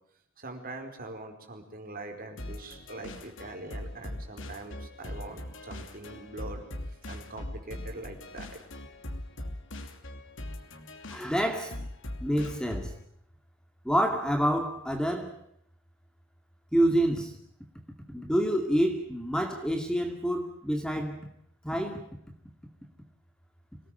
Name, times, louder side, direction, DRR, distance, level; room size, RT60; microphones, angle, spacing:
voice 1, 0.4-8.6, right 2 dB, 45° right, 4.8 m, -43 dB
sound 1, 2.4-13.0, left 1 dB, 65° left, 2.8 m, -41 dB
voice 2, 11.1-11.8 12.2-12.9 13.8-15.4 16.7-17.4 18.1-21.3 21.6-22.0, equal, 5° left, 2.3 m, -27 dB
25.5 x 18.5 x 9.2 m
head